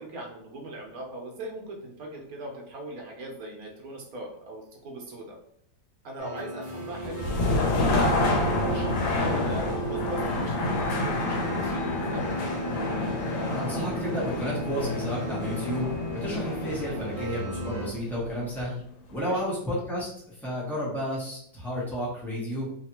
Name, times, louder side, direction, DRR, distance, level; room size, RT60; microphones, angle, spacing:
voice 1, 0.0-5.4 6.0-12.2 19.2-19.4, right 1 dB, 60° right, 0 dB, 1.2 m, -40 dB
sound 1, 6.2-17.9, right 1 dB, 40° right, 0.7 m, -34 dB
sound 2, 7.0-18.8, left 2 dB, 85° left, 1.4 m, -29 dB
voice 2, 13.5-18.8 19.1-22.7, equal, ahead, -6 dB, 0.5 m, -32 dB
3.3 x 2.8 x 2.9 m, 0.65 s
omnidirectional pair, 2.0 m